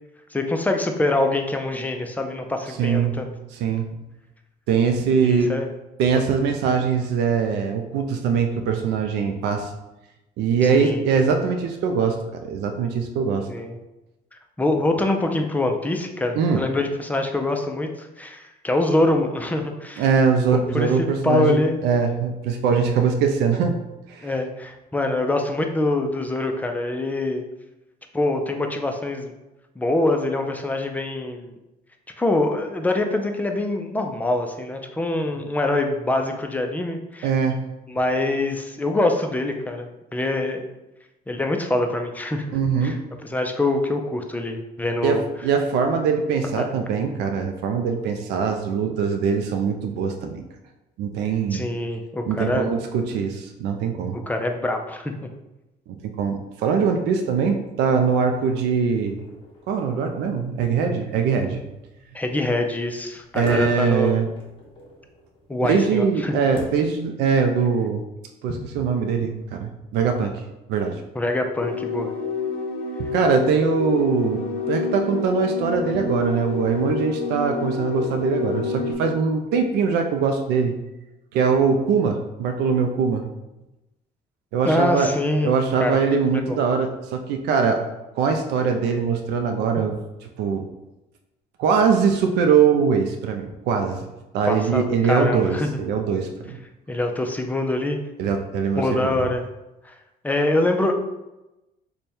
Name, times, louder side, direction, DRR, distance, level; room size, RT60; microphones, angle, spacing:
voice 1, 0.3-3.3 5.2-5.7 10.6-11.0 13.5-13.8 14.6-20.0 20.5-21.8 24.2-27.4 28.1-29.3 29.8-31.5 32.2-37.3 37.9-40.6 41.3-42.6 42.8-43.0 43.2-45.2 46.6-46.7 51.5-52.7 54.1-55.1 62.1-64.1 65.5-66.3 71.1-72.1 84.6-85.5 85.8-86.6 94.5-95.7 96.9-98.0 98.8-99.4 99.8-99.9 100.2-100.9, left 2 dB, 10° left, 4 dB, 0.4 m, -24 dB
voice 2, 2.8-3.2 3.5-3.9 4.7-5.5 6.0-9.7 10.4-12.2 12.4-13.5 16.3-16.6 20.0-23.8 24.1-24.3 37.2-37.6 42.5-43.0 45.0-50.4 51.0-51.6 52.3-54.2 55.9-59.2 59.7-61.6 63.3-64.3 64.8-64.9 65.6-68.0 68.4-70.4 70.7-71.0 73.0-74.4 74.7-80.7 81.3-83.2 84.5-85.1 85.4-87.8 88.2-90.0 90.4-90.6 91.6-94.1 94.3-96.6 98.2-99.2, right 6 dB, 80° right, 4 dB, 0.4 m, -22 dB
sound 1, 58.1-66.9, left 1 dB, 30° left, 0.9 m, -45 dB
sound 2, 71.6-78.9, left 4 dB, 60° left, 0.6 m, -28 dB
3.3 x 2.2 x 4.2 m, 0.99 s
cardioid pair, 110°, 17 cm